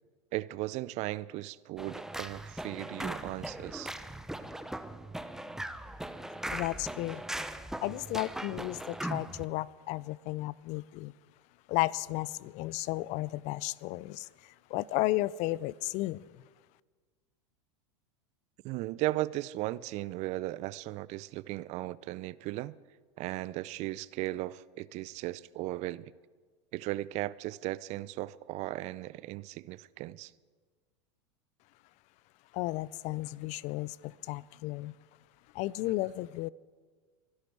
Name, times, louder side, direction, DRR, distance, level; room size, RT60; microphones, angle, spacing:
voice 1, 0.3-3.9 18.6-22.8 23.2-26.1 26.7-30.3, right 17 dB, 45° right, 0.5 m, -36 dB
sound 1, 1.8-9.4, right 1 dB, 5° right, 0.8 m, -39 dB
voice 2, 6.5-7.2 7.8-11.1 11.7-16.2 32.5-34.9 35.5-36.5, left 18 dB, 50° left, 0.4 m, -33 dB
23.5 x 11.0 x 4.7 m
hypercardioid pair, 100°, 16 cm